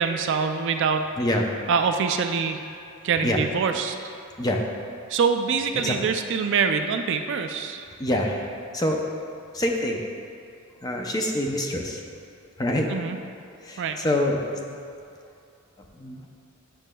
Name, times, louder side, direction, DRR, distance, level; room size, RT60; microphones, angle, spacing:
voice 1, 0.0-1.1 1.7-2.6 3.0-4.0 5.1-7.8 12.9-13.2 13.8-14.0, right 5 dB, 55° right, 6 dB, 0.3 m, -24 dB
voice 2, 8.0-8.4 8.7-9.0 9.5-10.0 10.8-12.0 12.6-12.9 13.6-14.8 15.9-16.3, left 1 dB, 20° left, 1 dB, 0.5 m, -25 dB
9.1 x 6.2 x 2.2 m, 2.5 s
head